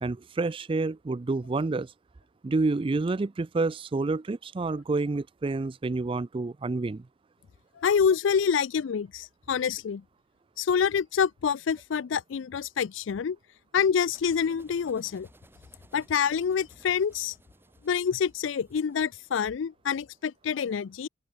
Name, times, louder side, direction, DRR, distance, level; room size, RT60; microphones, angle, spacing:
voice 1, 0.0-1.9 2.4-7.1, right 3 dB, 25° right, 0.4 m, -28 dB
voice 2, 7.8-10.0 10.6-13.4 13.7-15.3 15.9-17.3 17.8-21.1, left 7 dB, 70° left, 0.4 m, -27 dB
sound 1, 14.1-19.4, right 1 dB, 10° right, 7.4 m, -59 dB
open air
head